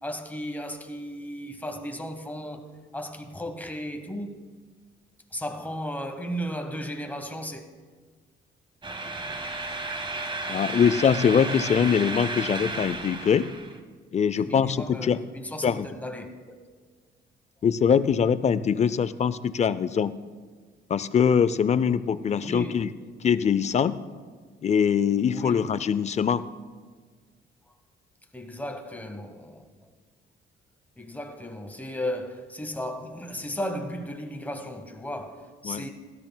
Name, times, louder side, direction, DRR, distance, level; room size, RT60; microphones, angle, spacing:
voice 1, 0.0-4.4 5.3-7.6 14.3-16.6 22.4-22.8 25.3-25.8 28.3-29.9 31.0-35.9, equal, 10° left, 1.2 m, -35 dB
sound 1, 8.8-13.8, right 2 dB, 25° right, 1.0 m, -33 dB
voice 2, 10.5-13.5 14.1-15.2 15.6-15.9 17.6-20.1 20.9-22.9 23.2-24.0 24.6-26.4 35.6-35.8, left 7 dB, 35° left, 0.5 m, -23 dB
16.5 x 12.5 x 2.3 m
cardioid pair, 90°, 20 cm